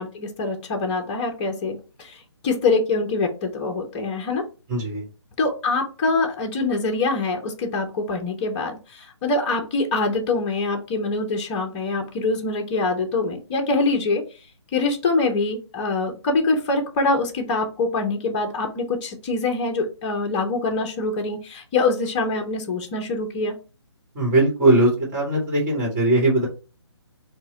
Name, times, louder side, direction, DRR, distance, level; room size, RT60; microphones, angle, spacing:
voice 1, 0.0-4.4 5.4-14.2 14.7-23.5, left 3 dB, 20° left, 3 dB, 0.7 m, -24 dB
voice 2, 4.7-5.0 24.1-26.5, right 2 dB, 20° right, -1 dB, 1.5 m, -19 dB
4.6 x 2.2 x 3.9 m, 0.33 s
figure-of-eight pair, 150°, 15 cm